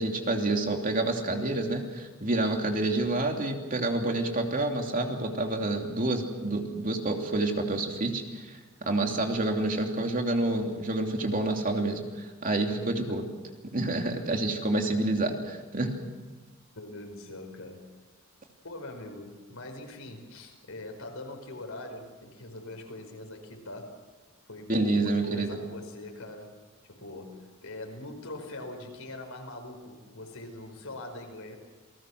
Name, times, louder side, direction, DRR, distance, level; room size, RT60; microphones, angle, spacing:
voice 1, 0.0-13.2 13.7-16.0 24.7-25.6, right 2 dB, 40° right, 2 dB, 2.9 m, -28 dB
voice 2, 12.7-13.1 16.8-17.9 18.6-24.0 24.5-26.6 26.8-31.6, left 2 dB, 90° left, 4 dB, 5.1 m, -42 dB
28.5 x 19.0 x 6.4 m, 1.3 s
head